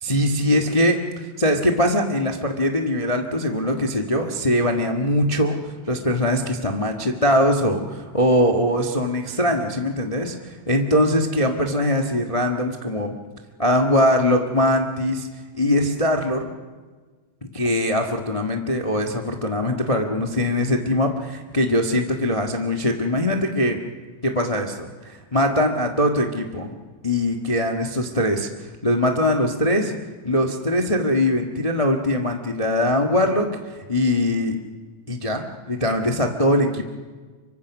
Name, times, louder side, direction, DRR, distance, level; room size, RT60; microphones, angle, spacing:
voice 1, 0.0-13.1 13.6-15.3 15.5-16.5 17.5-23.8 24.2-26.7 27.0-29.9 30.2-34.6 35.1-36.9, left 1 dB, 30° left, 2 dB, 0.6 m, -22 dB
25.0 x 24.0 x 6.1 m, 1.4 s
omnidirectional pair, 3.5 m